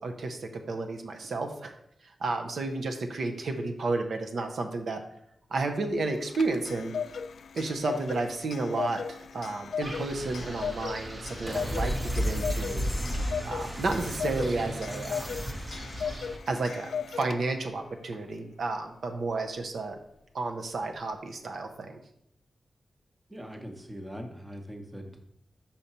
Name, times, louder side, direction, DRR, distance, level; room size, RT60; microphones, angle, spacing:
voice 1, 0.0-1.7 2.0-5.0 5.5-6.9 7.5-12.9 13.4-15.3 16.5-20.0 20.3-22.0, right 3 dB, 70° right, 4 dB, 0.7 m, -32 dB
Clock, 6.1-17.7, left 6 dB, 75° left, 0.3 m, -37 dB
Wind, 9.8-16.4, equal, 40° right, 0.9 m, -34 dB
sound 1, 11.5-16.3, equal, 5° left, 0.4 m, -40 dB
voice 2, 23.3-25.2, equal, 10° right, 4 dB, 0.9 m, -41 dB
5.7 x 5.2 x 4.2 m, 0.74 s
wide cardioid pair, 110°, 0 cm